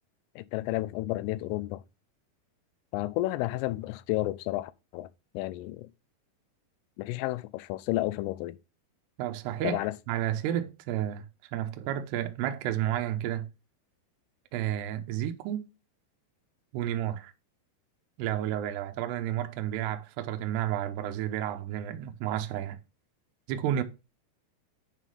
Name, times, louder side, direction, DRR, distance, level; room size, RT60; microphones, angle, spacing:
voice 1, 0.4-1.8 2.9-5.1 5.3-5.9 7.0-8.6 9.6-10.0, left 17 dB, 85° left, 3.1 m, -31 dB
voice 2, 9.2-11.3 11.5-13.5 14.5-15.7 16.7-17.3 18.2-22.8 23.5-23.8, right 11 dB, 80° right, 2.5 m, -31 dB
9.1 x 3.8 x 6.2 m
omnidirectional pair, 5.9 m